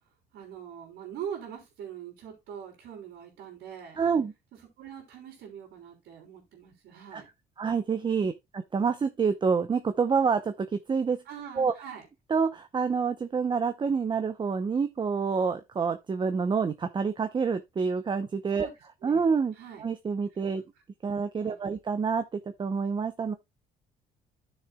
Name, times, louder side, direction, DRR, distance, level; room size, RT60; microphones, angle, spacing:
voice 1, 0.3-4.0 4.8-7.3 8.2-8.3 11.3-12.1 18.6-18.7 19.0-19.2 19.5-19.8 20.3-20.4 21.4-21.7, right 8 dB, 80° right, 3.6 m, -43 dB
voice 2, 4.0-4.3 7.1-7.2 7.6-11.2 11.6-11.7 12.3-18.7 19.0-19.5 19.8-20.6 21.0-23.3, right 5 dB, 30° right, 0.8 m, -27 dB
13.0 x 6.6 x 2.3 m
cardioid pair, 110°, 17 cm